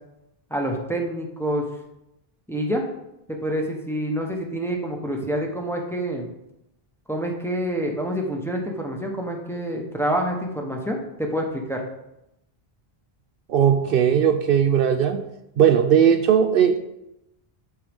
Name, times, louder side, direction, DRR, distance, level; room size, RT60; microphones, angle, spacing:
voice 1, 0.5-1.7 2.5-2.8 3.3-6.3 7.1-11.8, right 1 dB, 5° left, 1 dB, 1.0 m, -27 dB
voice 2, 13.5-15.2 15.6-16.9, right 8 dB, 65° right, 8 dB, 0.7 m, -18 dB
12.5 x 4.7 x 3.6 m, 0.86 s
omnidirectional pair, 1.0 m